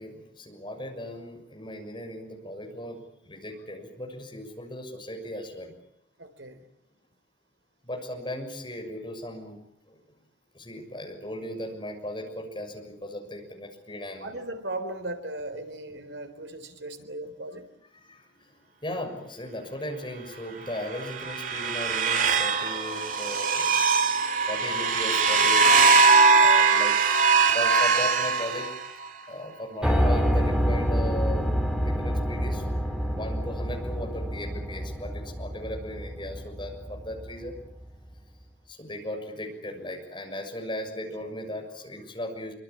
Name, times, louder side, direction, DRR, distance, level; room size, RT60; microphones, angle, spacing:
voice 1, 0.0-5.7 7.8-9.6 9.9-10.0 10.5-14.4 17.9-23.8 24.1-24.2 24.5-25.7 26.4-27.0 27.5-28.7 29.3-31.5 31.8-32.7 33.0-37.5 38.7-42.5, left 1 dB, 25° left, 3 dB, 6.7 m, -37 dB
voice 2, 6.2-6.7 14.2-17.7, right 1 dB, 85° right, 8 dB, 4.1 m, -37 dB
sound 1, 20.8-29.1, right 4 dB, 45° right, 2.3 m, -21 dB
Piano, 29.8-37.8, equal, 5° right, 4.8 m, -27 dB
26.5 x 24.5 x 8.7 m, 0.72 s
head